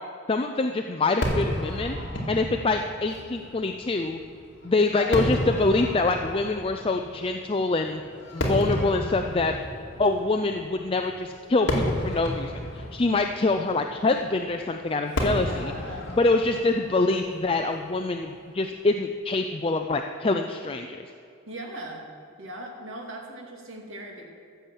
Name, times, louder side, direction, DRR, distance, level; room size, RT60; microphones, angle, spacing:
voice 1, 0.3-2.0 2.3-4.2 4.6-8.0 8.3-9.5 10.0-15.7 16.1-21.0, left 3 dB, 25° left, 4 dB, 0.5 m, -25 dB
Fireworks, 1.2-18.5, left 1 dB, 60° left, 2.3 m, -33 dB
voice 2, 4.8-5.2 15.3-16.1 21.5-22.1 22.4-24.3, right 1 dB, 75° right, 0 dB, 2.3 m, -39 dB
15.0 x 7.0 x 7.4 m, 2.4 s
head